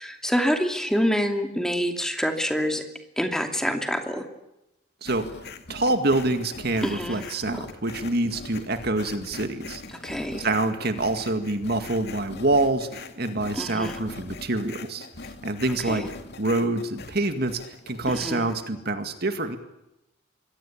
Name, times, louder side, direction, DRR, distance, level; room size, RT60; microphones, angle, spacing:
voice 1, 0.0-2.8 3.2-4.3 6.8-7.2 7.5-7.7 10.0-10.5 13.5-14.0 15.8-16.1 18.1-18.4, equal, 5° left, 5 dB, 2.7 m, -26 dB
sound 1, 5.1-18.7, left 3 dB, 55° left, 2.3 m, -42 dB
voice 2, 5.7-9.8 10.4-15.1 15.4-16.1 16.4-19.6, right 2 dB, 50° right, 8 dB, 2.1 m, -26 dB
26.5 x 22.0 x 8.6 m, 0.90 s
head